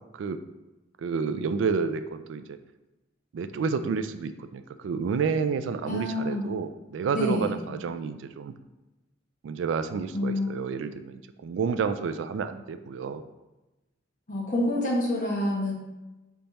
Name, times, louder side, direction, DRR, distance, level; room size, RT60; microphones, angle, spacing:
voice 1, 1.0-2.6 3.3-8.5 9.4-13.2, right 5 dB, 80° right, 10 dB, 0.3 m, -30 dB
voice 2, 5.8-6.4 7.1-7.5 10.1-10.5 14.3-15.7, left 1 dB, 45° left, -4 dB, 1.3 m, -27 dB
5.3 x 3.4 x 2.9 m, 1.0 s
head